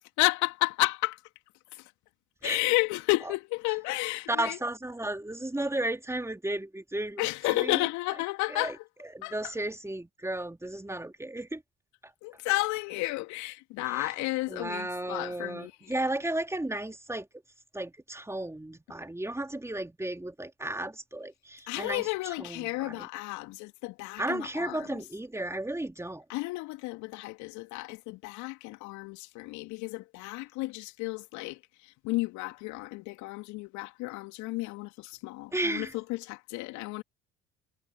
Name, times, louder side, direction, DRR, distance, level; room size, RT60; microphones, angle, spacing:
voice 1, 0.2-1.2 1.7-1.9 2.4-4.6 7.2-8.9 9.2-9.5 12.2-16.0 21.7-25.0 26.3-37.0, left 21 dB, 65° left, 2.9 m, -32 dB
voice 2, 4.3-7.8 8.5-8.7 9.1-11.6 13.9-14.1 14.5-17.3 17.7-22.1 22.4-23.1 24.2-26.2 35.5-35.9, right 1 dB, 10° right, 3.6 m, -34 dB
hypercardioid pair, 60°, 31 cm